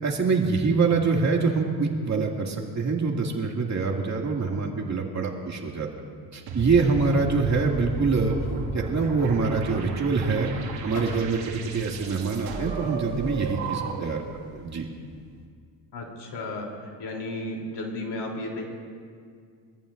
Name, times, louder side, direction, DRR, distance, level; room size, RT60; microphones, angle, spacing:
voice 1, 0.0-5.9 6.3-8.4 8.7-10.5 10.8-14.2 14.5-14.9, right 4 dB, 40° right, 0 dB, 2.3 m, -25 dB
sound 1, 6.5-14.3, right 3 dB, 85° right, 2.1 m, -34 dB
sound 2, 6.6-13.7, left 4 dB, 80° left, 2.1 m, -45 dB
voice 2, 15.9-16.7 17.0-18.6, left 2 dB, 65° left, 0 dB, 3.4 m, -33 dB
24.5 x 14.5 x 2.6 m, 2.1 s
cardioid pair, 85°, 43 cm